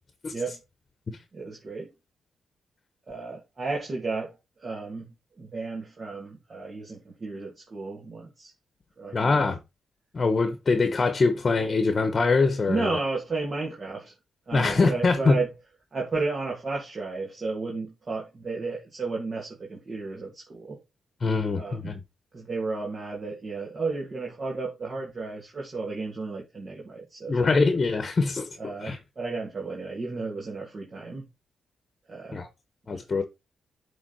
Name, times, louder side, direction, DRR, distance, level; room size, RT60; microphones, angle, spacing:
voice 1, 1.3-1.9 3.1-5.1 5.4-8.5 9.0-9.4 12.7-14.1 14.5-15.5 15.9-20.8 21.5-22.0 22.3-27.6 28.6-31.3 32.1-32.4 32.9-33.0, right 3 dB, 45° right, 2.3 m, -33 dB
voice 2, 9.1-9.6 10.1-12.9 14.5-15.4 21.2-22.0 27.3-29.0 32.3-32.5 32.9-33.2, left 3 dB, 40° left, 1.1 m, -23 dB
8.3 x 3.7 x 4.3 m
cardioid pair, 65°, 0 cm